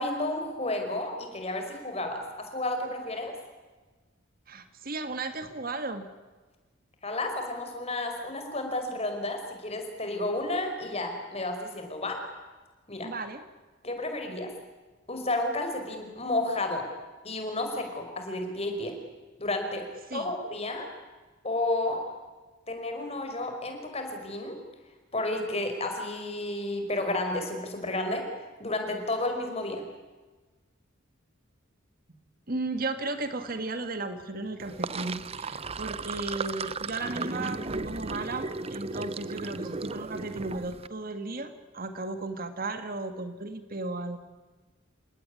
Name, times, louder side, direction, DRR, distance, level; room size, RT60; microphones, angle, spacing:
voice 1, 0.0-3.3 7.0-12.2 12.9-13.1 13.8-14.5 15.1-16.9 17.2-18.9 19.4-20.9 21.4-22.0 22.7-24.6 25.1-28.3 28.6-29.8, left 2 dB, 30° left, 5 dB, 5.2 m, -31 dB
voice 2, 4.5-6.1 13.0-13.4 20.1-20.3 32.5-44.2, right 2 dB, 45° right, 9 dB, 1.9 m, -35 dB
Sink (filling or washing), 34.6-40.9, right 3 dB, 30° right, 0.7 m, -35 dB
29.0 x 18.0 x 9.8 m, 1.3 s
head